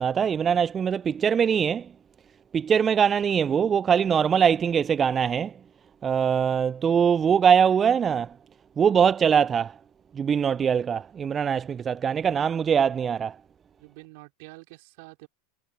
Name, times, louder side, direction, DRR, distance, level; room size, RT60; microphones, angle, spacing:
voice 1, 0.0-1.9 2.5-5.5 6.0-8.3 8.8-9.8 10.1-13.4, right 7 dB, 25° right, 0.4 m, -22 dB
voice 2, 13.8-15.3, right 26 dB, 60° right, 4.0 m, -47 dB
hypercardioid pair, 90°, 0 cm